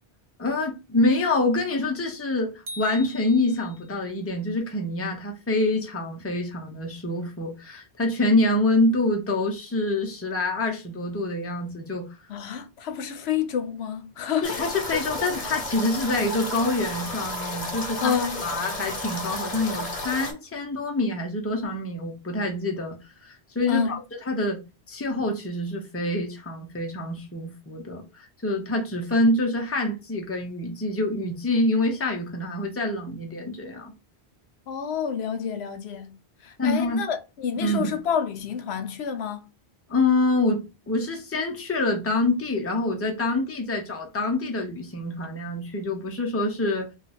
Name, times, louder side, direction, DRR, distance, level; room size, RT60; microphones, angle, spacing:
voice 1, 0.4-12.1 14.4-18.1 18.4-24.0 24.3-24.6 24.9-33.9 36.6-37.0 37.6-37.9 39.9-46.9, left 2 dB, 15° left, 0.6 m, -26 dB
sound 1, 2.7-4.1, left 1 dB, 60° right, 0.8 m, -42 dB
voice 2, 12.3-14.6 14.9-15.0 18.0-18.4 23.7-23.9 34.7-39.5, left 7 dB, 85° left, 0.8 m, -29 dB
sound 2, 14.4-20.3, left 1 dB, 45° left, 0.9 m, -32 dB
2.4 x 2.3 x 4.0 m
omnidirectional pair, 1.1 m